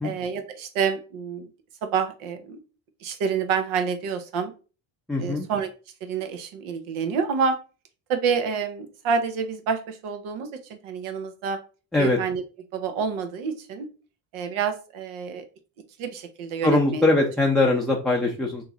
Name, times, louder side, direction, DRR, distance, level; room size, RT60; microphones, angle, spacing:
voice 1, 0.0-1.5 1.8-2.6 3.0-4.5 5.2-5.7 6.0-7.6 8.1-11.6 12.0-12.4 12.7-13.9 14.3-15.4 16.0-17.0, right 6 dB, 85° right, 8 dB, 0.9 m, -28 dB
voice 2, 5.1-5.5 11.9-12.2 16.6-18.6, left 2 dB, ahead, -2 dB, 0.5 m, -21 dB
3.1 x 2.9 x 3.6 m, 0.33 s
cardioid pair, 105°, 48 cm